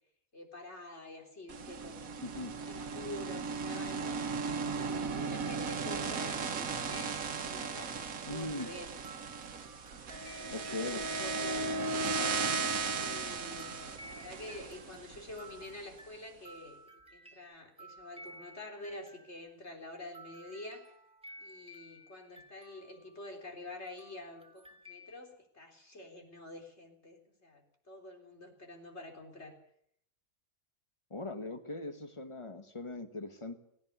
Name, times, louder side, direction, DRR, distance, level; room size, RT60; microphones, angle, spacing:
voice 1, 0.3-4.4 4.7-8.9 10.4-12.6 13.0-20.9 21.4-29.6, left 1 dB, 50° left, 3 dB, 4.2 m, -48 dB
sound 1, 1.5-15.7, right 4 dB, 75° right, 1.7 m, -36 dB
voice 2, 2.2-2.5 8.2-8.7 10.5-11.1 31.1-33.6, left 2 dB, 20° left, 8 dB, 1.7 m, -40 dB
sound 2, 6.1-19.7 20.1-25.2, equal, 5° right, 2.5 m, -55 dB
18.0 x 17.5 x 8.3 m, 0.69 s
omnidirectional pair, 1.5 m